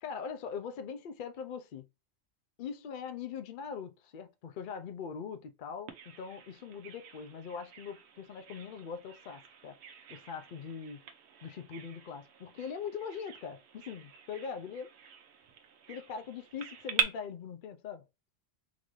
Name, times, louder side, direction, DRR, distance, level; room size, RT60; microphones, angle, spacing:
voice 1, 0.0-1.9 2.6-9.8 10.1-11.0 11.4-14.9 15.9-18.0, left 6 dB, 55° left, 0.7 m, -42 dB
Bird vocalization bird call bird song, 5.9-17.0, right 7 dB, 80° right, 0.9 m, -42 dB
4.0 x 2.6 x 3.0 m
omnidirectional pair, 1.1 m